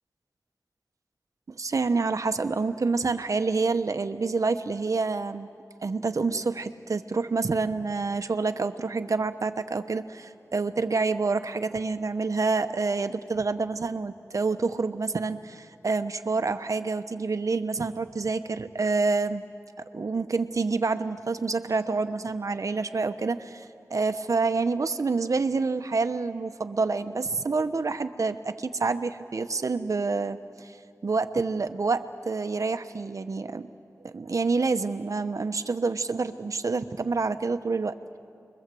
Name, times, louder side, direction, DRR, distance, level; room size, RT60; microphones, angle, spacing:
voice 1, 1.5-5.5 5.8-19.4 19.9-30.8 31.0-33.7 34.0-37.9, right 4 dB, 65° right, 9 dB, 1.0 m, -27 dB
29.5 x 22.0 x 7.7 m, 2.4 s
wide cardioid pair, 80°, 6 cm